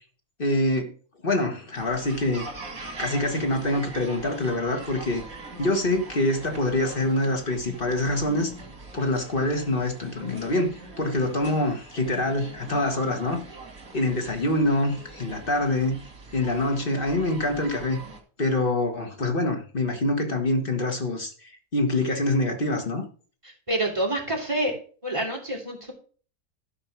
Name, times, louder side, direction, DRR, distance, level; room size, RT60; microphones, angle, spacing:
voice 1, 0.4-0.9 1.2-2.5 3.0-5.2 5.6-8.5 8.9-13.4 13.9-16.0 16.3-18.0 18.4-21.3 21.7-23.1, left 2 dB, 40° left, 1.9 m, -25 dB
sound 1, 1.7-18.2, right 3 dB, 75° right, 2.6 m, -42 dB
voice 2, 23.4-24.7 25.0-25.9, right 1 dB, 20° right, 3.2 m, -27 dB
13.0 x 5.0 x 6.1 m
omnidirectional pair, 1.5 m